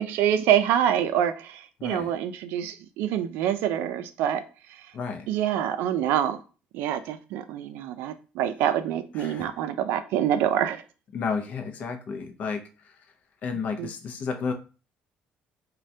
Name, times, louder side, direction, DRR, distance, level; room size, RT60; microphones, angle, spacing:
voice 1, 0.0-4.4 4.7-4.9 5.3-6.4 6.7-10.8 13.8-13.9, right 10 dB, 85° right, 10 dB, 0.3 m, -26 dB
voice 2, 1.8-2.1 4.9-5.3 9.2-9.5 11.1-12.9 13.4-14.5, left 5 dB, 45° left, 6 dB, 0.4 m, -32 dB
3.2 x 2.2 x 2.6 m, 0.35 s
cardioid pair, 165°, 4 cm